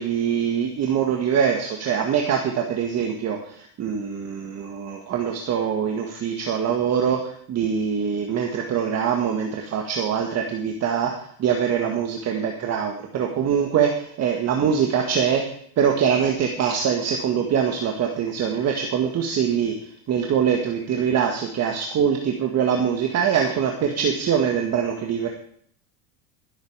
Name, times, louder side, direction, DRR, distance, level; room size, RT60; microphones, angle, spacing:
voice 1, 0.0-15.4 15.8-19.7 20.1-25.3, right 7 dB, 35° right, 3 dB, 1.6 m, -23 dB
16.0 x 8.2 x 4.9 m, 0.63 s
supercardioid pair, 110°, 43 cm